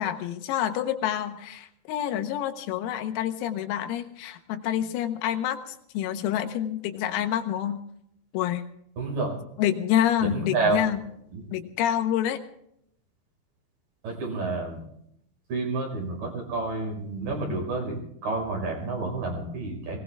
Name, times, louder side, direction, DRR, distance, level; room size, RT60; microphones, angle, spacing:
voice 1, 0.0-7.8 8.3-8.6 9.6-11.0 11.5-12.4, left 11 dB, 85° left, 7 dB, 4.0 m, -27 dB
voice 2, 9.0-9.3 10.2-10.8 11.3-11.4 14.0-14.8 15.5-20.0, right 3 dB, 45° right, 0 dB, 6.7 m, -29 dB
20.5 x 19.5 x 3.6 m, 0.74 s
omnidirectional pair, 6.0 m